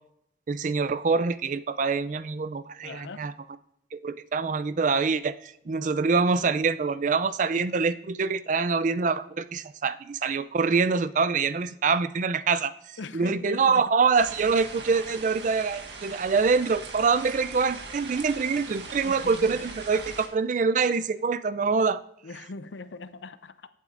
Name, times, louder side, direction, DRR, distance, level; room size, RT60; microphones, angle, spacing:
voice 1, 0.5-3.3 3.9-22.0, right 5 dB, 45° right, 0.4 m, -25 dB
voice 2, 2.8-3.3 13.0-13.8 19.0-19.6 22.2-23.7, left 3 dB, 85° left, 0.6 m, -40 dB
sound 1, 14.1-20.3, right 4 dB, 75° right, 1.6 m, -40 dB
15.5 x 8.4 x 2.5 m
head